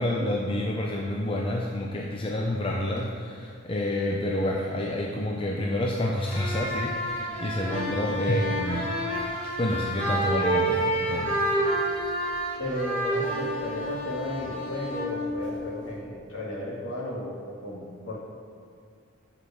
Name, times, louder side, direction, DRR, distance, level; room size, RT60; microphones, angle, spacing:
voice 1, 0.0-8.9 9.4-11.4, left 1 dB, 25° left, -1 dB, 0.5 m, -28 dB
sound 1, 6.2-16.0, right 1 dB, 5° left, 1.8 m, -29 dB
voice 2, 12.6-18.2, left 1 dB, 65° left, -5 dB, 2.0 m, -34 dB
8.3 x 4.9 x 5.1 m, 2.3 s
head